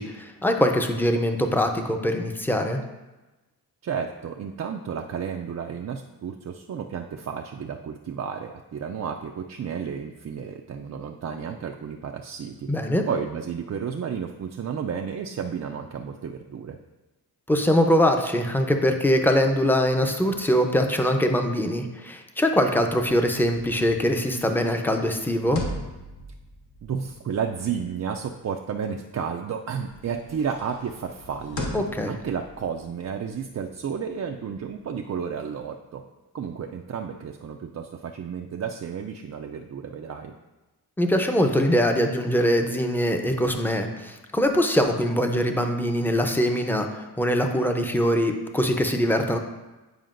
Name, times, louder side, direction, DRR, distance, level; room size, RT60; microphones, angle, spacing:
voice 1, 0.0-2.8 12.7-13.0 17.5-25.6 31.7-32.1 41.0-49.4, equal, 5° left, 4 dB, 0.6 m, -23 dB
voice 2, 3.8-12.7 13.1-16.8 26.8-31.7 32.1-36.0 36.3-40.3, right 7 dB, 45° right, 2 dB, 0.4 m, -32 dB
sound 1, 23.0-29.4 29.7-35.1, left 1 dB, 65° left, 1.5 m, -40 dB
9.3 x 4.9 x 2.5 m, 1.1 s
cardioid pair, 75°, 39 cm